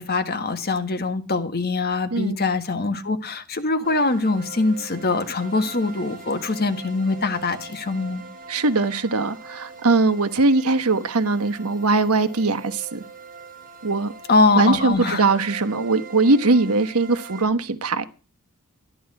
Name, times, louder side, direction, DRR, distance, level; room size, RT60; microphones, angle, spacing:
voice 1, 0.0-8.2 14.3-15.2, left 3 dB, 45° left, 1.6 m, -23 dB
sound 1, 3.8-17.4, right 4 dB, 40° right, 3.7 m, -42 dB
voice 2, 8.5-13.0 13.8-14.1 14.5-18.0, right 3 dB, 70° right, 1.2 m, -21 dB
13.5 x 11.0 x 4.8 m
head